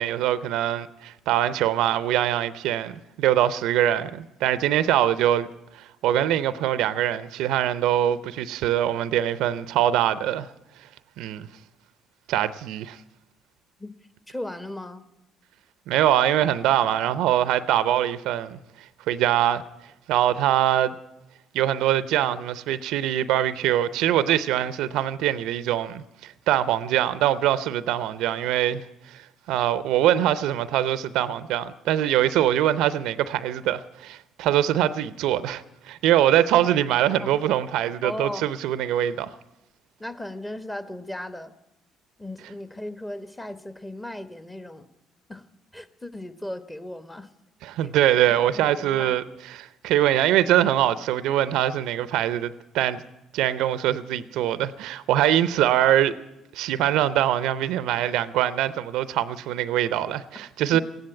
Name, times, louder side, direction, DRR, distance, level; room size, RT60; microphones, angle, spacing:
voice 1, 0.0-5.5 5.7-10.5 11.2-11.5 12.3-13.0 15.9-18.6 19.1-19.6 20.1-21.0 21.5-28.8 29.1-39.3 47.6-53.0 53.3-56.2 56.5-60.8, right 12 dB, 70° right, 0.6 m, -23 dB
voice 2, 14.3-15.1 37.1-37.4 38.0-38.5 40.0-41.5 42.2-44.9 45.3-45.4 45.7-47.3 47.8-47.9 48.4-49.1 60.7-60.8, left 1 dB, 15° left, 1.3 m, -36 dB
15.5 x 10.5 x 8.8 m
hypercardioid pair, 60°, 0 cm